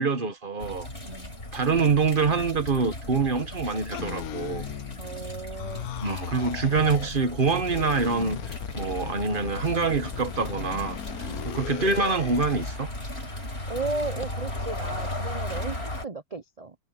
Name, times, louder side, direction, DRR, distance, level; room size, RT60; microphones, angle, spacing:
voice 1, 0.0-0.9 1.5-4.7 6.0-8.4 8.7-11.0 11.4-12.9, right 4 dB, 30° right, 1.4 m, -25 dB
sound 1, 0.6-16.1, left 1 dB, 30° left, 5.2 m, -36 dB
voice 2, 1.0-1.3 5.0-5.9 11.2-11.5 13.7-16.7, right 3 dB, 60° right, 0.3 m, -35 dB
sound 2, 3.9-5.2 5.5-7.2 7.6-12.8, left 13 dB, 65° left, 1.0 m, -38 dB
omnidirectional pair, 2.0 m